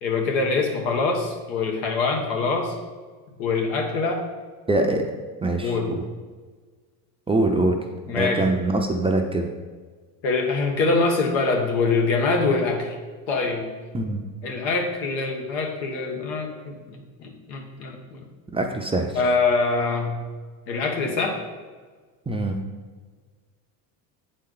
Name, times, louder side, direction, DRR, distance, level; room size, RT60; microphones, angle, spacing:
voice 1, 0.0-2.7 3.4-4.2 5.6-5.9 8.1-8.4 10.2-13.0 13.3-13.7 14.4-18.2 19.1-20.2 20.7-21.4, left 3 dB, 85° left, 2 dB, 1.3 m, -24 dB
voice 2, 4.7-5.1 5.4-6.0 7.3-7.8 8.1-9.5 13.9-14.2 18.5-19.2 22.3-22.6, right 2 dB, 10° right, 2 dB, 0.5 m, -23 dB
7.7 x 4.4 x 3.8 m, 1.5 s
supercardioid pair, 100°, 48 cm